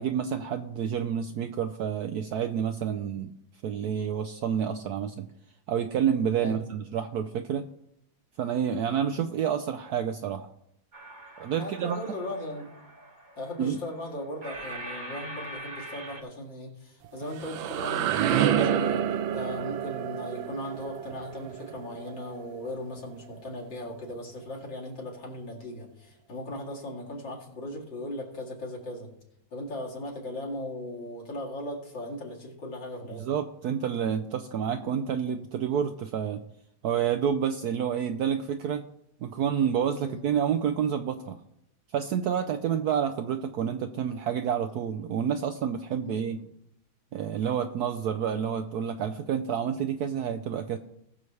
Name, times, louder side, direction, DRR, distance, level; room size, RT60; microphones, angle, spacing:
voice 1, 0.0-3.3 3.6-5.3 5.7-7.7 8.4-10.5 11.4-12.0 13.6-13.8 33.2-36.4 36.8-38.8 39.2-41.4 41.9-46.4 47.1-50.8, right 8 dB, 75° right, 8 dB, 0.9 m, -29 dB
sound 1, 10.9-16.2, right 1 dB, 35° right, 0.9 m, -43 dB
voice 2, 11.6-12.7 13.4-29.1 29.5-33.2 40.0-40.2 46.0-46.5 50.1-50.5, left 1 dB, 70° left, -2 dB, 3.0 m, -38 dB
sound 2, 17.0-22.8, right 9 dB, 90° right, 1.4 m, -29 dB
20.0 x 6.8 x 3.2 m, 0.77 s
omnidirectional pair, 2.1 m